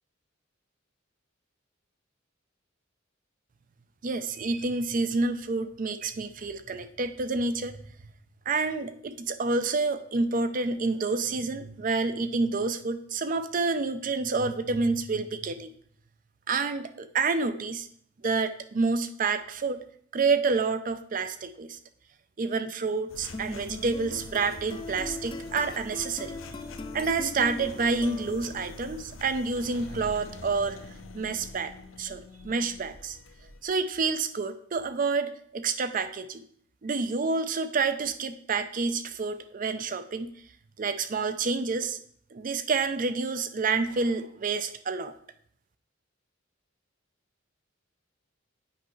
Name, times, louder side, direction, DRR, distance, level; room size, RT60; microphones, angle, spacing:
voice 1, 4.0-7.8 8.5-15.7 16.5-17.9 18.2-19.8 20.1-21.8 22.4-26.4 26.9-30.8 31.1-31.7 32.0-33.2 33.6-36.4 36.8-40.3 40.8-42.0 42.3-45.1, right 4 dB, 40° right, 11 dB, 0.4 m, -28 dB
sound 1, 23.1-33.6, left 2 dB, 80° left, 0.7 m, -45 dB
sound 2, 23.3-28.7, left 2 dB, 25° left, 0.5 m, -40 dB
8.5 x 5.4 x 3.1 m, 0.62 s
head